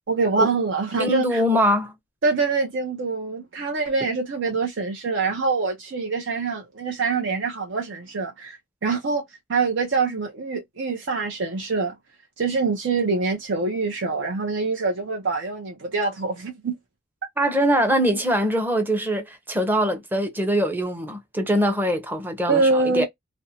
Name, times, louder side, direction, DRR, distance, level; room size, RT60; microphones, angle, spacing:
voice 1, 0.1-1.4 2.2-9.2 9.5-11.9 12.4-16.7 22.5-23.0, right 4 dB, 65° right, 0.6 m, -25 dB
voice 2, 1.0-1.9 17.4-23.0, equal, 10° right, 0.6 m, -23 dB
2.5 x 2.1 x 2.7 m
head